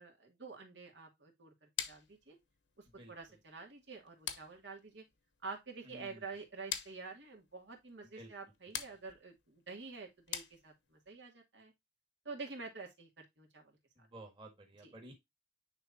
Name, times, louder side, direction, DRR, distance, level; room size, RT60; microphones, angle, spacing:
voice 1, 0.0-1.5 1.9-2.4 3.1-5.0 5.4-11.7 12.2-13.7 14.8-14.9, right 4 dB, 80° right, 2.4 m, -48 dB
sound 1, 1.8-11.1, left 10 dB, 85° left, 1.0 m, -47 dB
voice 2, 5.8-6.2 8.1-8.3 14.0-15.1, right 1 dB, 30° right, 1.6 m, -52 dB
9.7 x 3.6 x 2.7 m
head